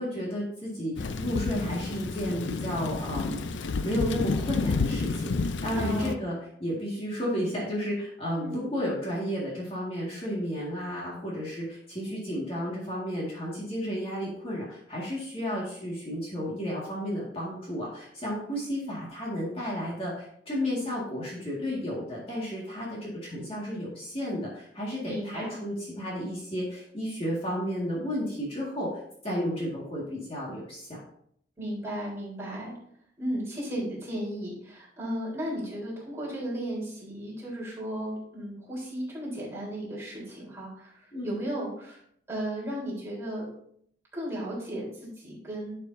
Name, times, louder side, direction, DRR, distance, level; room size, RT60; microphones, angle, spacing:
voice 1, 0.0-6.4 6.6-31.0 41.1-41.4, equal, 30° left, -5 dB, 1.9 m, -32 dB
Thunder / Rain, 1.0-6.1, left 3 dB, 75° left, 0.5 m, -30 dB
voice 2, 5.7-6.2 8.4-8.6 25.0-25.6 31.6-32.7 33.2-42.0 42.3-43.5 44.1-45.7, equal, 15° right, -6 dB, 3.7 m, -35 dB
11.0 x 6.6 x 2.7 m, 0.67 s
head